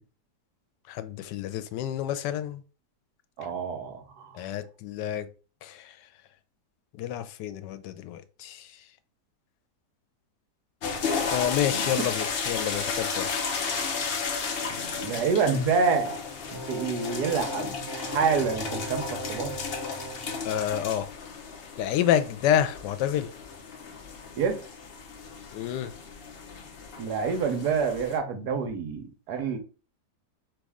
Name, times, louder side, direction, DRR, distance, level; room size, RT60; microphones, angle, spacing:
voice 1, 0.9-2.6 4.4-5.3 5.6-5.8 7.0-8.6 11.3-13.4 20.4-21.1 21.8-23.3 25.5-25.9, left 10 dB, 90° left, 1.2 m, -28 dB
voice 2, 3.4-4.3 12.0-12.1 15.0-16.2 16.5-19.5 24.4-24.6 27.0-29.6, right 5 dB, 70° right, 1.3 m, -27 dB
sound 1, 10.8-28.2, left 5 dB, 55° left, 0.7 m, -34 dB
sound 2, 16.5-20.4, right 3 dB, 55° right, 0.8 m, -40 dB
4.1 x 3.2 x 3.5 m
omnidirectional pair, 1.8 m